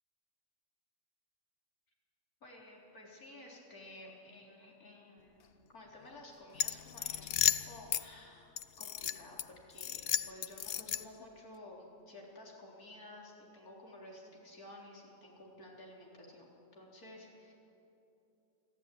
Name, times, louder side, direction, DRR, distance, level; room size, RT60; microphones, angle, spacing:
voice 1, 2.4-16.5 16.7-17.5, left 1 dB, 60° left, -3 dB, 4.4 m, -53 dB
sound 1, 6.5-8.0 8.6-9.4 9.8-11.2, left 10 dB, 80° left, 0.5 m, -33 dB
25.0 x 15.0 x 9.2 m, 3.0 s
omnidirectional pair, 1.8 m